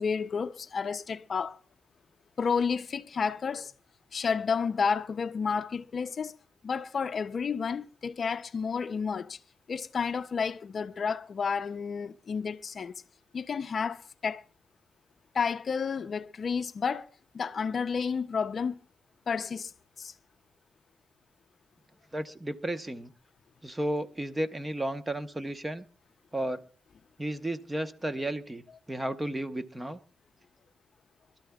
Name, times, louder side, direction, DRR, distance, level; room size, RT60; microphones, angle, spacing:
voice 1, 0.0-1.6 2.4-3.7 4.1-6.4 6.6-9.4 9.7-12.9 13.3-14.4 15.3-17.1 17.3-18.8 19.3-19.7 20.0-20.1, left 6 dB, 50° left, 0.5 m, -31 dB
voice 2, 22.1-23.1 23.6-25.8 26.3-26.6 27.2-30.0, right 1 dB, 15° right, 0.9 m, -33 dB
26.0 x 13.0 x 2.3 m
cardioid pair, 95°, 0 cm